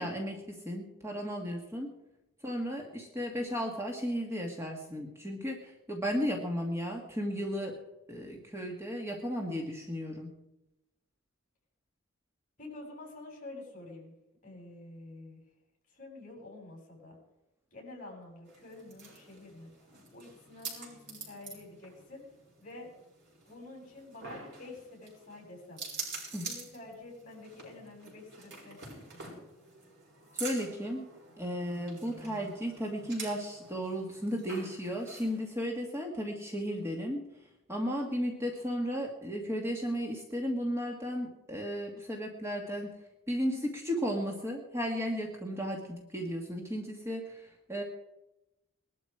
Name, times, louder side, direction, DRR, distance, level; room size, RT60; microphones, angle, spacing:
voice 1, 0.0-1.9 2.4-7.8 8.1-10.3 26.3-26.5 30.3-31.1 31.4-37.2 37.7-42.9 43.3-47.8, equal, 10° right, 1 dB, 1.9 m, -34 dB
voice 2, 12.6-14.1 14.4-15.4 15.9-17.2 17.7-19.7 20.1-22.2 22.6-22.9 23.5-25.9 26.4-29.2, left 2 dB, 40° left, 0 dB, 7.3 m, -48 dB
sound 1, 18.5-35.5, right 3 dB, 50° right, 7.3 m, -47 dB
21.0 x 12.5 x 4.9 m, 0.93 s
head